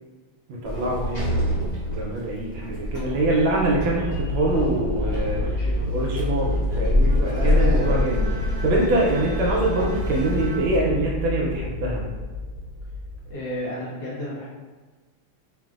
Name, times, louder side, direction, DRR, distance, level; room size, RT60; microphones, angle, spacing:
voice 1, 0.5-5.4 5.9-12.0, right 1 dB, 75° right, -2 dB, 1.2 m, -24 dB
Sliding door, 0.6-10.8, left 1 dB, 50° left, 0.8 m, -26 dB
sound 1, 3.7-13.3, left 1 dB, 50° right, 0.6 m, -29 dB
voice 2, 5.3-5.9 13.3-14.5, equal, 70° left, -8 dB, 0.9 m, -33 dB
Bowed string instrument, 7.8-11.9, right 2 dB, 15° right, 1.1 m, -39 dB
3.3 x 2.4 x 2.4 m, 1.3 s
omnidirectional pair, 2.4 m